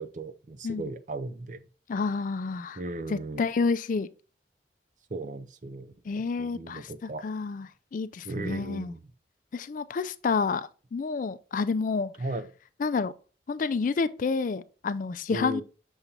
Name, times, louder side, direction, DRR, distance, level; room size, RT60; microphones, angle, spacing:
voice 1, 0.0-1.6 2.8-3.4 5.1-7.2 8.2-9.1 12.2-12.5 15.3-15.6, right 2 dB, 45° right, 0.5 m, -36 dB
voice 2, 1.9-2.8 3.1-4.1 6.1-7.7 7.9-8.9 9.5-12.1 12.8-13.1 13.5-15.6, left 4 dB, 45° left, 0.3 m, -29 dB
7.1 x 5.1 x 2.8 m
head